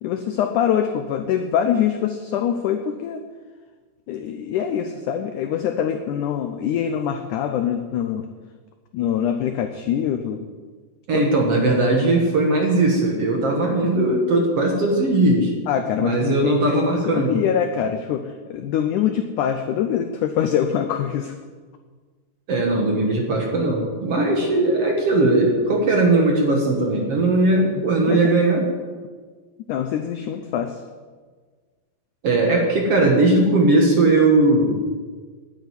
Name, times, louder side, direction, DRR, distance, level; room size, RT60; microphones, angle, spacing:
voice 1, 0.0-3.2 4.1-8.3 8.9-10.5 11.1-11.2 15.7-21.3 28.1-28.3 29.7-30.8, left 9 dB, 85° left, 7 dB, 1.7 m, -24 dB
voice 2, 11.1-15.5 16.0-17.4 22.5-28.6 32.2-34.8, right 2 dB, 50° right, 1 dB, 2.1 m, -19 dB
11.0 x 9.1 x 9.7 m, 1.5 s
omnidirectional pair, 4.4 m